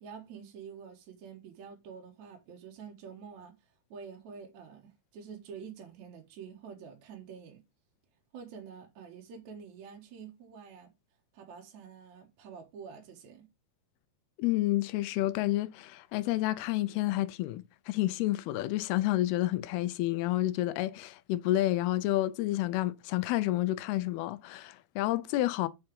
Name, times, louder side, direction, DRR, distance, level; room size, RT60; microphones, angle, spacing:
voice 1, 0.0-3.5 3.9-7.6 8.3-10.9 11.3-13.5, right 6 dB, 65° right, 2.1 m, -47 dB
voice 2, 14.4-25.7, left 16 dB, 85° left, 2.6 m, -30 dB
5.8 x 5.4 x 5.2 m
omnidirectional pair, 4.5 m